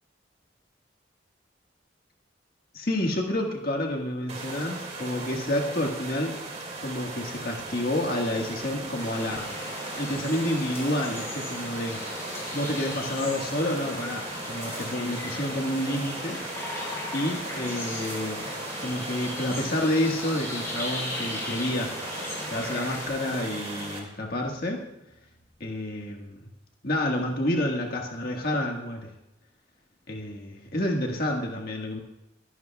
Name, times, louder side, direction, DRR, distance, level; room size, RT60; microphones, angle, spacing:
voice 1, 2.7-6.3 6.8-9.5 9.9-12.0 12.5-16.4 17.1-18.5 18.8-21.9 22.5-24.8 25.6-26.4 26.8-29.1 30.1-32.0, left 1 dB, 55° left, 1 dB, 1.6 m, -29 dB
sound 1, 4.3-24.0, right 2 dB, 35° right, 2.2 m, -38 dB
sound 2, 9.0-23.1, left 1 dB, 15° left, 3.9 m, -37 dB
23.0 x 11.5 x 2.3 m, 0.90 s
head